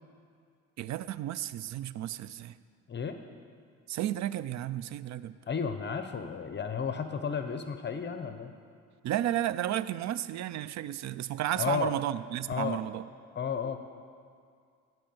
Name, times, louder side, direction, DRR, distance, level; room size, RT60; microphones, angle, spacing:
voice 1, 0.8-2.6 3.9-5.4 9.0-13.1, right 12 dB, 65° right, 16 dB, 0.4 m, -33 dB
voice 2, 5.5-8.5 11.6-11.9 12.5-12.8 13.3-13.8, left 6 dB, 35° left, 8 dB, 0.7 m, -33 dB
14.0 x 4.6 x 7.8 m, 2.2 s
cardioid pair, 90°, 30 cm